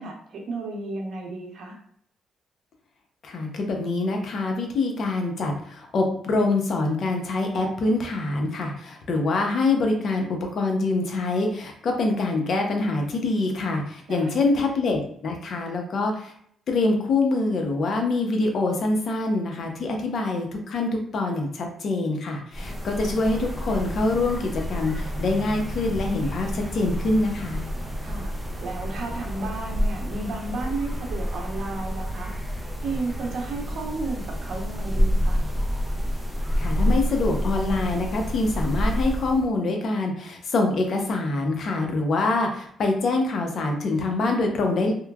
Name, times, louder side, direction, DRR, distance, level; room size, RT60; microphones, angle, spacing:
voice 1, 0.0-1.8 14.1-14.4 28.0-28.3 28.6-32.3 32.8-35.4, right 3 dB, 65° right, 0 dB, 0.8 m, -33 dB
voice 2, 3.2-16.3 16.7-27.6 36.6-44.9, left 2 dB, 55° left, 2 dB, 0.6 m, -25 dB
sound 1, 22.5-39.5, equal, 5° right, 0.5 m, -28 dB
3.0 x 2.2 x 2.3 m, 0.64 s
cardioid pair, 90°, 0 cm